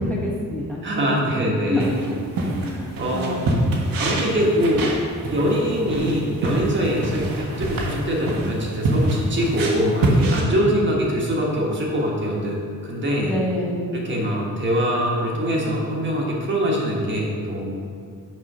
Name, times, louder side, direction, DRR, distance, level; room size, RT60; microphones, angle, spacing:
voice 1, 0.0-0.8 1.3-2.2 2.6-3.4 13.2-13.9, left 1 dB, 5° left, -6 dB, 1.0 m, -27 dB
voice 2, 0.8-1.9 3.0-3.4 4.0-4.9 5.3-13.3 13.9-17.8, equal, 35° right, -3 dB, 1.3 m, -23 dB
sound 1, 1.8-10.4, right 1 dB, 80° right, 1.4 m, -25 dB
6.4 x 5.5 x 5.4 m, 2.2 s
wide cardioid pair, 170°, 34 cm